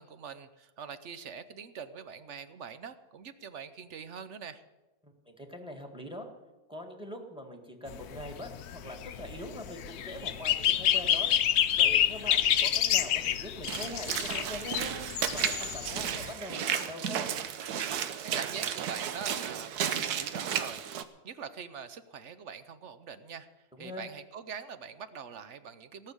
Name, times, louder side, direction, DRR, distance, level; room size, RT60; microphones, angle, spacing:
voice 1, 0.0-4.6 17.9-19.8 20.1-20.8 21.2-23.5 23.8-26.1, right 7 dB, 55° right, 12 dB, 1.0 m, -43 dB
voice 2, 5.0-6.3 6.7-11.3 11.8-15.0 15.3-17.2 23.8-24.1, left 1 dB, 5° right, 5 dB, 1.8 m, -43 dB
sound 1, 7.9-16.3, left 10 dB, 80° left, 1.2 m, -28 dB
Walk footsteps / Splash splatter, 13.7-21.0, right 8 dB, 85° right, 1.4 m, -33 dB
17.5 x 6.7 x 9.6 m, 1.1 s
omnidirectional pair, 1.6 m